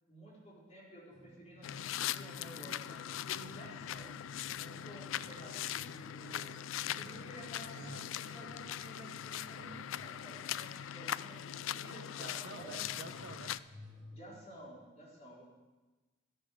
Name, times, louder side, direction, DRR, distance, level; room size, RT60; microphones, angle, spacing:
voice 1, 0.1-12.9 14.1-15.4, right 1 dB, 35° left, -5 dB, 4.3 m, -53 dB
sound 1, 1.1-14.1, left 1 dB, 20° right, 3.7 m, -57 dB
sound 2, 1.6-13.6, left 11 dB, 80° left, 0.3 m, -41 dB
voice 2, 7.7-8.1 12.2-13.5, right 2 dB, 55° right, 7 dB, 0.9 m, -49 dB
12.0 x 12.0 x 6.4 m, 1.2 s
head